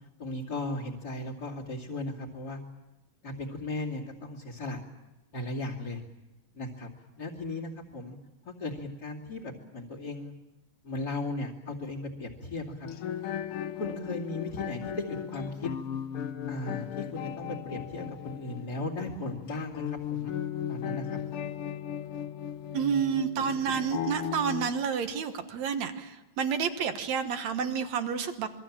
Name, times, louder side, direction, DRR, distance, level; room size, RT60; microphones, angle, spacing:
voice 1, 0.2-2.6 3.2-4.8 5.3-6.0 6.5-6.9 7.2-8.2 8.4-10.3 10.8-12.9 13.7-15.7 16.5-20.3 20.7-21.2 22.7-23.1, left 2 dB, 30° left, 3 dB, 2.8 m, -36 dB
sound 1, 12.8-24.7, left 10 dB, 80° left, 1.2 m, -36 dB
voice 2, 22.7-28.5, right 7 dB, 60° right, 8 dB, 2.3 m, -29 dB
27.0 x 22.5 x 7.4 m, 1.0 s
omnidirectional pair, 3.8 m